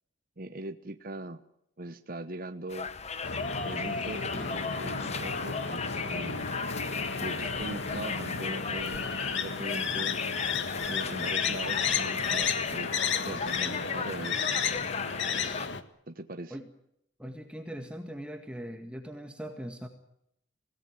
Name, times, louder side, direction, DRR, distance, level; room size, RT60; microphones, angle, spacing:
voice 1, 0.4-1.4 1.8-2.9 3.6-6.5 6.8-12.9 13.2-14.5 16.1-16.6, right 2 dB, 50° right, 8 dB, 1.1 m, -41 dB
Conversation, 2.7-15.7, left 5 dB, 35° left, 1.3 m, -36 dB
sound 1, 3.2-15.8, left 6 dB, 70° left, 1.6 m, -33 dB
voice 2, 17.2-19.9, equal, 5° right, 5 dB, 1.9 m, -40 dB
25.5 x 18.0 x 7.8 m, 0.77 s
head